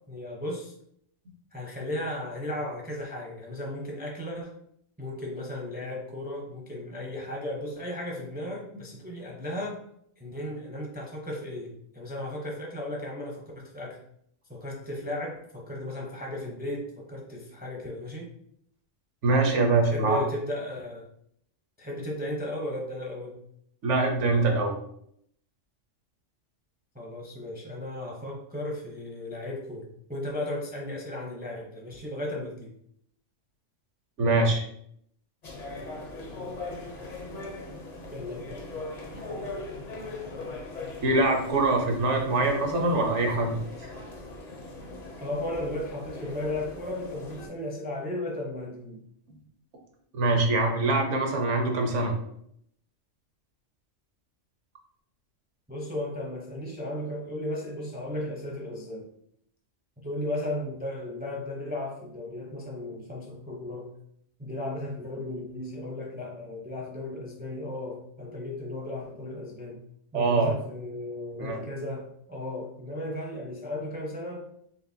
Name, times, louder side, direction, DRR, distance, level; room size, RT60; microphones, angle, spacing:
voice 1, 0.1-0.7 1.5-4.5 5.0-9.8 10.2-14.0 14.5-18.3 19.8-21.1 21.8-23.4 26.9-32.7 38.1-38.6 39.1-39.3 45.2-49.0 55.7-59.0 60.0-63.9 64.4-69.8 70.1-74.5, left 1 dB, 10° right, -2 dB, 0.5 m, -35 dB
voice 2, 19.2-20.2 23.8-24.8 34.2-34.6 41.0-43.6 50.1-52.1 70.1-70.5 71.4-71.6, right 2 dB, 70° right, 2 dB, 1.1 m, -24 dB
sound 1, 35.4-47.5, left 2 dB, 40° left, 0.6 m, -40 dB
4.6 x 2.9 x 2.7 m, 0.71 s
omnidirectional pair, 1.3 m